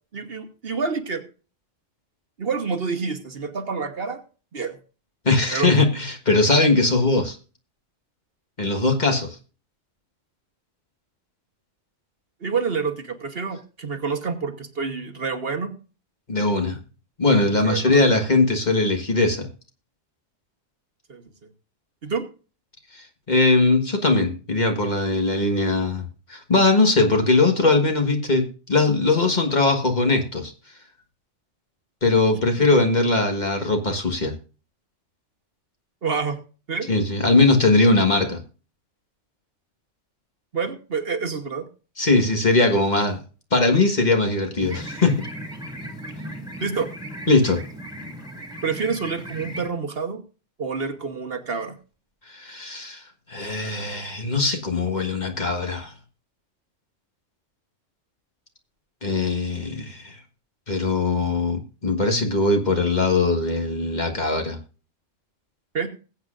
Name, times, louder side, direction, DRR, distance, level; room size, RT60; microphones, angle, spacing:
voice 1, 0.1-1.2 2.4-4.2 4.5-4.7 5.5-5.7 12.4-15.7 17.6-18.1 21.1-21.2 22.0-22.2 32.6-32.7 36.0-36.4 36.7-36.9 40.5-41.7 46.6-46.9 48.6-50.2 50.6-51.8 65.7-65.9, right 5 dB, 50° right, 6 dB, 1.4 m, -28 dB
voice 2, 5.2-7.4 8.6-9.4 16.3-16.8 17.2-19.5 22.9-30.5 32.0-34.3 36.9-38.4 42.0-43.2 43.5-45.2 47.3-47.6 52.3-53.0 53.3-55.9 59.0-60.2 60.7-64.6, left 3 dB, 35° left, 4 dB, 1.5 m, -20 dB
sound 1, 44.6-49.7, equal, 5° right, 2.1 m, -37 dB
20.5 x 8.1 x 2.5 m, 0.36 s
omnidirectional pair, 1.3 m